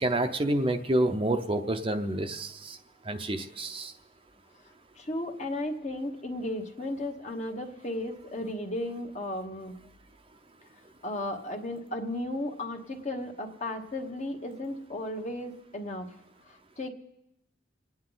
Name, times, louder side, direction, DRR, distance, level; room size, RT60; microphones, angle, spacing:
voice 1, 0.0-2.8 3.1-3.9, right 1 dB, 30° right, 6 dB, 0.6 m, -28 dB
voice 2, 5.0-9.8 11.0-16.1 16.5-16.9, left 1 dB, 40° left, 3 dB, 1.2 m, -35 dB
27.5 x 9.6 x 3.9 m, 0.84 s
head